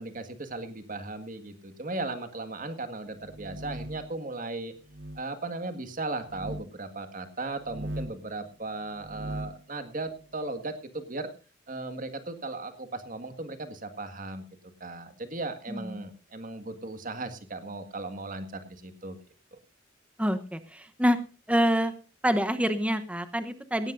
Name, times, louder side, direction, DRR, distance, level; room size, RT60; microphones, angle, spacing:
voice 1, 0.0-4.7 5.2-11.3 11.7-14.4 14.8-19.2 19.5-19.6, right 2 dB, 45° right, 9 dB, 1.8 m, -37 dB
sound 1, 3.2-4.2 4.9-5.2 6.2-6.7 7.5-8.3 8.9-9.6, right 1 dB, 70° right, 1.0 m, -39 dB
voice 2, 15.7-16.0 20.2-21.2 21.5-21.9 22.2-23.9, equal, 5° right, 9 dB, 0.9 m, -26 dB
18.0 x 16.5 x 2.6 m, 0.33 s
head